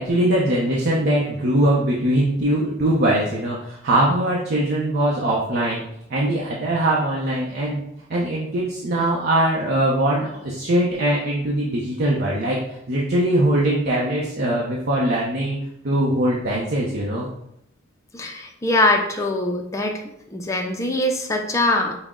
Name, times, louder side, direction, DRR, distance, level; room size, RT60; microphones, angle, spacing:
voice 1, 0.0-5.8 6.1-7.8 8.1-12.6 12.9-15.6 15.8-17.3, right 1 dB, 50° right, -4 dB, 0.6 m, -21 dB
voice 2, 18.1-20.0 20.3-22.0, left 1 dB, 15° left, 2 dB, 0.4 m, -22 dB
5.9 x 2.1 x 3.6 m, 0.77 s
head